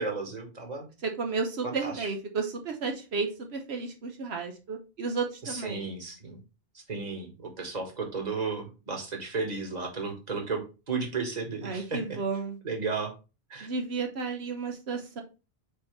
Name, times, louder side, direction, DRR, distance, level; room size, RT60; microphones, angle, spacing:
voice 1, 0.0-0.9 1.6-2.1 5.4-6.4 6.7-12.0 12.6-13.1 13.5-13.7, right 4 dB, 40° right, 2 dB, 1.6 m, -34 dB
voice 2, 1.0-5.9 11.6-12.6 13.6-15.2, right 4 dB, 85° right, 3 dB, 1.2 m, -32 dB
6.8 x 4.4 x 3.2 m, 0.30 s
omnidirectional pair, 1.1 m